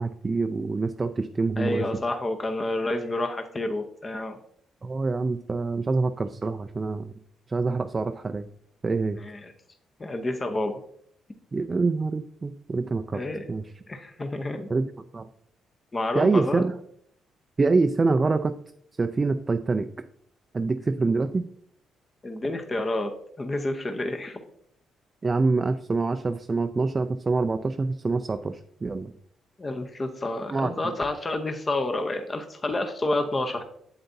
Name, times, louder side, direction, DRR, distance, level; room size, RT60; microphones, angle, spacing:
voice 1, 0.0-1.8 4.8-7.1 7.5-8.5 8.8-9.2 11.5-13.2 13.5-13.6 14.7-14.9 15.1-15.3 16.1-16.7 17.6-18.5 19.0-19.9 20.5-21.4 25.2-29.1 30.5-30.7, right 3 dB, 30° right, 8 dB, 0.4 m, -25 dB
voice 2, 1.6-4.4 9.2-9.5 10.0-10.8 13.1-13.5 13.9-14.7 15.9-16.6 22.2-23.1 23.4-24.4 29.6-33.6, left 2 dB, 25° left, 6 dB, 0.8 m, -29 dB
7.9 x 7.8 x 2.7 m, 0.68 s
cardioid pair, 90°, 0 cm